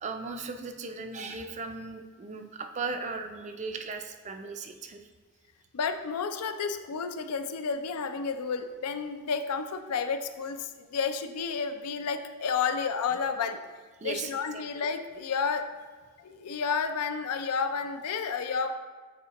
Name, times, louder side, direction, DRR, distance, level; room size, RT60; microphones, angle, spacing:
voice 1, 0.0-5.0 14.0-14.9, right 4 dB, 30° right, 5 dB, 0.4 m, -37 dB
voice 2, 5.7-13.6 14.0-15.6 16.2-18.7, left 5 dB, 85° left, 8 dB, 0.5 m, -31 dB
8.2 x 4.3 x 2.9 m, 1.5 s
head